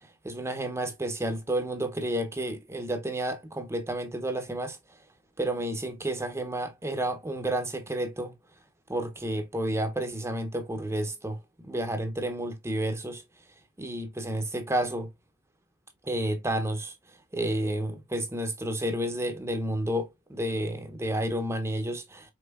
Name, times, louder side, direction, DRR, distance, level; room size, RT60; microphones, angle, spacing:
voice 1, 0.2-5.0 5.4-8.3 8.9-13.2 13.8-15.1 16.0-16.9 17.3-22.3, right 1 dB, 15° right, 0.7 m, -31 dB
5.5 x 3.7 x 2.3 m
head